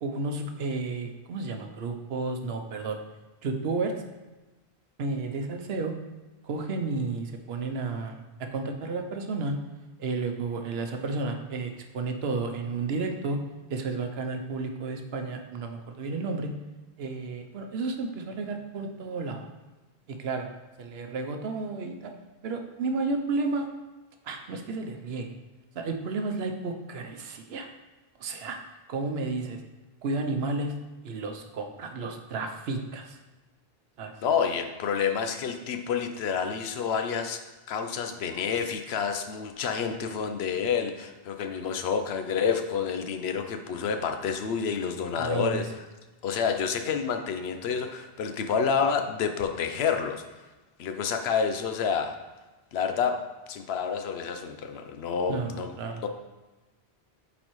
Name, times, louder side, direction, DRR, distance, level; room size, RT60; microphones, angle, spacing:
voice 1, 0.0-3.0 3.4-3.9 5.0-5.9 6.4-8.2 8.5-9.6 10.0-13.4 13.7-16.5 17.0-19.5 20.1-20.5 20.8-22.1 22.4-23.7 24.2-25.3 25.7-27.7 28.2-28.6 28.9-29.6 30.0-30.7 31.0-33.2 34.0-34.1 45.2-45.7 55.3-56.0, right 3 dB, 75° right, 5 dB, 0.9 m, -32 dB
voice 2, 34.2-37.4 37.7-45.7 46.2-50.2 50.8-52.2 52.7-53.2 53.5-55.7 56.0-56.1, left 6 dB, 75° left, 7 dB, 0.9 m, -29 dB
8.5 x 4.1 x 3.1 m, 1.1 s
omnidirectional pair, 1.1 m